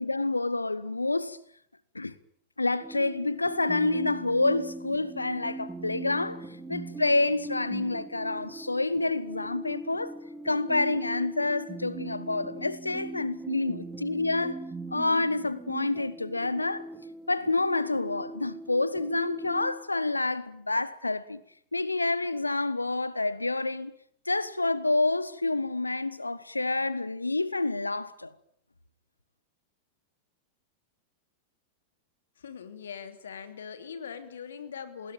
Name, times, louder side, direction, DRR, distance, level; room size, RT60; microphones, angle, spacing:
voice 1, 0.0-1.4 1.9-2.1 2.6-10.1 10.4-14.6 14.9-16.9 17.3-21.4 21.7-23.9 24.3-28.3, left 2 dB, 80° left, 1.4 m, -28 dB
sound 1, 2.8-19.8, right 2 dB, 10° right, 2.6 m, -40 dB
voice 2, 32.4-35.1, left 7 dB, 65° left, 3.0 m, -41 dB
28.0 x 20.5 x 9.2 m
figure-of-eight pair, 90°, 0 cm